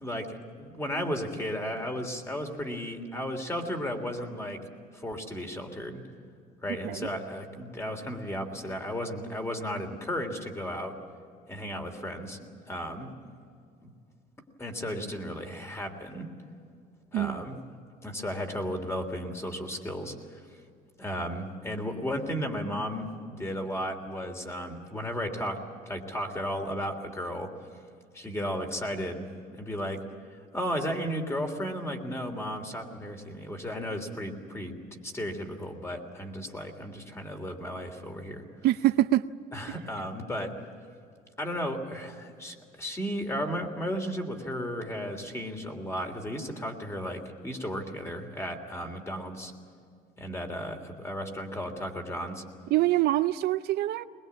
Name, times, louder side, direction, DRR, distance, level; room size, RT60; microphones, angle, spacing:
voice 1, 0.0-4.6 4.9-6.0 6.6-10.9 11.5-12.4 12.7-13.1 13.8-13.9 14.6-16.3 17.1-17.6 18.0-20.4 21.0-27.5 28.1-30.0 30.5-38.4 39.5-40.5 41.4-49.5 50.2-52.4, equal, 15° left, 3.2 m, -34 dB
voice 2, 38.6-39.3 52.7-54.0, right 15 dB, 75° right, 0.6 m, -25 dB
21.5 x 21.5 x 8.5 m
cardioid pair, 110°, 17 cm